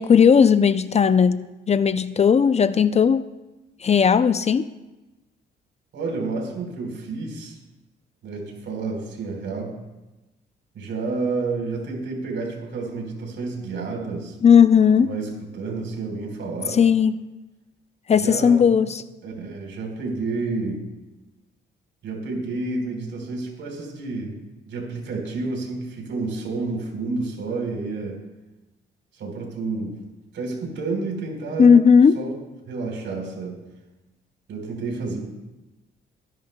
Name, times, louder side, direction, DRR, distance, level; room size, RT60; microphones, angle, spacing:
voice 1, 0.0-3.2 3.8-4.7 14.4-15.1 16.7-17.2 18.1-19.0 31.6-32.2, left 6 dB, 35° left, 13 dB, 0.4 m, -16 dB
voice 2, 5.9-7.6 8.2-9.7 10.7-14.4 15.0-16.8 18.2-18.7 19.2-20.9 22.0-24.4 24.6-28.2 29.1-30.0 30.3-31.7 32.1-32.4 32.6-33.6 34.5-35.2, right 3 dB, 70° right, 0 dB, 4.1 m, -30 dB
22.0 x 11.0 x 2.2 m, 1.1 s
cardioid pair, 90°, 20 cm